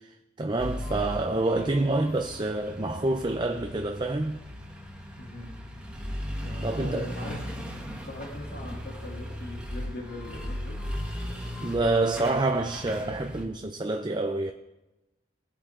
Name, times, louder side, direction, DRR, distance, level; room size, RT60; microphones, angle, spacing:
voice 1, 0.0-4.4 6.6-7.1 11.6-14.5, right 2 dB, 25° right, 0.6 m, -27 dB
sound 1, 0.6-13.5, equal, 5° right, 1.5 m, -37 dB
voice 2, 0.8-1.3 5.2-5.5 6.4-7.6 8.0-10.8, left 2 dB, 85° left, 3.0 m, -41 dB
21.0 x 8.1 x 3.8 m
head